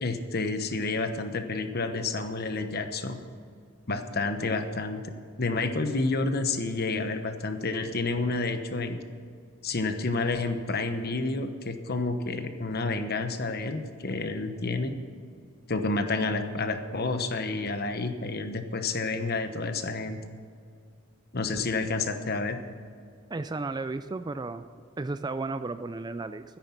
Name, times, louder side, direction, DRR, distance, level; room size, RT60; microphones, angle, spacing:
voice 1, 0.0-3.2 3.9-9.0 9.6-15.0 15.7-20.2 21.3-22.6, left 3 dB, 45° left, 8 dB, 1.1 m, -29 dB
voice 2, 23.3-24.6 25.0-26.4, right 3 dB, 20° right, 11 dB, 0.3 m, -33 dB
13.5 x 10.5 x 5.8 m, 2.3 s
head